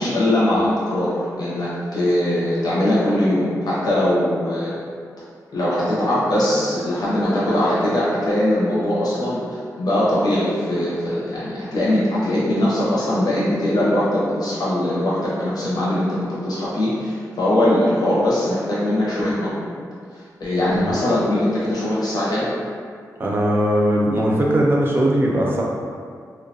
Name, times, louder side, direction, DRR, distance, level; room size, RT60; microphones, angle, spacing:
voice 1, 0.0-4.8 5.5-19.5 20.1-22.5, left 1 dB, 75° left, -8 dB, 0.6 m, -21 dB
voice 2, 23.2-25.6, right 1 dB, 35° right, -3 dB, 0.5 m, -19 dB
2.6 x 2.2 x 2.6 m, 2.1 s
cardioid pair, 75°, 7 cm